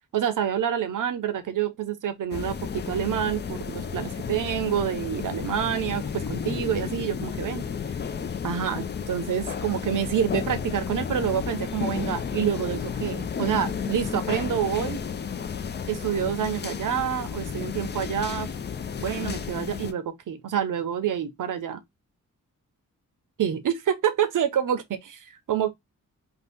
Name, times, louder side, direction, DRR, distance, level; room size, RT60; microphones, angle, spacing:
voice 1, 0.1-7.7 8.4-15.0 15.9-18.5 19.0-21.8 23.4-25.7, right 9 dB, 70° right, 0.7 m, -27 dB
sound 1, 2.3-19.9, left 6 dB, 35° left, 0.4 m, -32 dB
2.7 x 2.2 x 3.4 m
wide cardioid pair, 125°, 33 cm